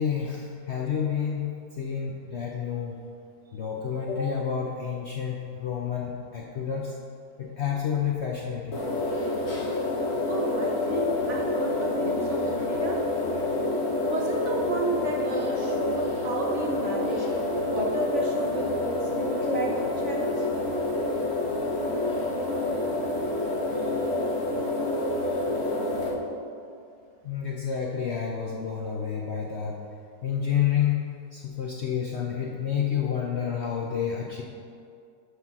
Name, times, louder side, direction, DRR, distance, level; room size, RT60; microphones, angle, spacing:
voice 1, 0.0-1.4 1.8-2.9 3.5-6.9 7.4-8.8 27.2-29.8 30.2-34.4, left 8 dB, 60° left, -2 dB, 0.7 m, -29 dB
sound 1, 8.7-26.1, left 2 dB, 40° left, 1.5 m, -28 dB
voice 2, 10.2-13.0 14.0-17.3 17.6-20.3, right 2 dB, 55° right, 0 dB, 0.9 m, -32 dB
6.3 x 5.8 x 5.9 m, 2.4 s
omnidirectional pair, 1.8 m